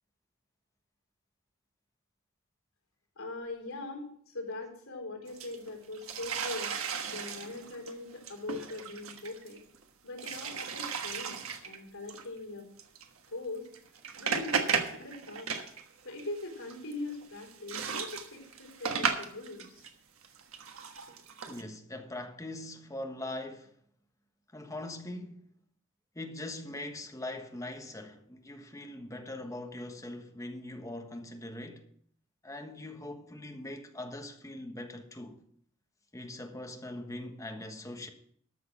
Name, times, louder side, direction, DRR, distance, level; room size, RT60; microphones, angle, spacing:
voice 1, 3.2-6.8 7.1-9.6 10.0-12.7 13.3-13.7 14.2-14.7 15.0-15.5 16.0-19.8, left 2 dB, 85° left, 4.1 m, -41 dB
sound 1, 5.3-9.8 10.2-11.8 12.1-12.2 12.8-13.0 13.7-15.8 16.1-19.9 20.2-21.6, right 6 dB, 75° right, 1.4 m, -35 dB
voice 2, 21.4-23.7 24.5-25.4 26.1-31.8 32.4-35.4 36.1-38.1, left 1 dB, 15° left, 1.3 m, -41 dB
13.0 x 6.4 x 6.1 m
head